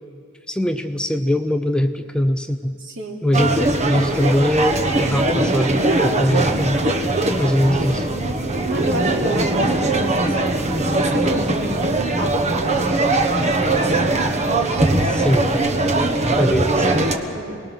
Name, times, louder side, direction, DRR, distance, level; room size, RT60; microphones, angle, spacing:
voice 1, 0.5-2.8 3.2-6.8 7.4-8.1 15.0-15.5 16.4-16.9, equal, 5° left, 7 dB, 0.6 m, -21 dB
voice 2, 2.8-3.2 8.7-10.4 10.8-13.3 15.9-16.2 17.3-17.6, right 1 dB, 60° right, 0 dB, 3.0 m, -30 dB
sound 1, 3.3-17.2, right 2 dB, 35° right, 1.4 m, -20 dB
28.0 x 20.0 x 6.3 m, 2.2 s
head